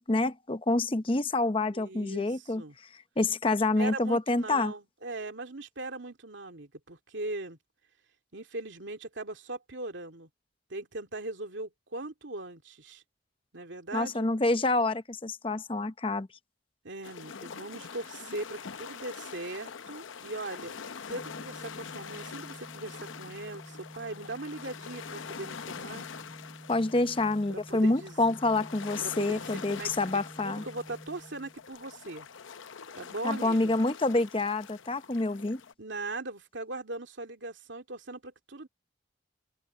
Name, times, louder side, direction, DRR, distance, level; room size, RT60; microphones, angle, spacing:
voice 1, 0.0-2.6 3.2-4.7 13.9-16.3 26.7-30.6 33.2-35.6, left 2 dB, 25° left, 0.7 m, -27 dB
voice 2, 1.7-2.8 3.8-7.6 8.3-10.3 10.7-13.0 13.5-14.3 16.8-20.7 21.1-26.0 27.5-28.2 29.0-32.3 32.9-33.8 35.8-38.7, right 2 dB, 70° right, 2.5 m, -40 dB
sound 1, 17.0-35.7, left 6 dB, 80° left, 0.7 m, -44 dB
Organ, 21.1-32.0, equal, ahead, 5.3 m, -49 dB
open air
head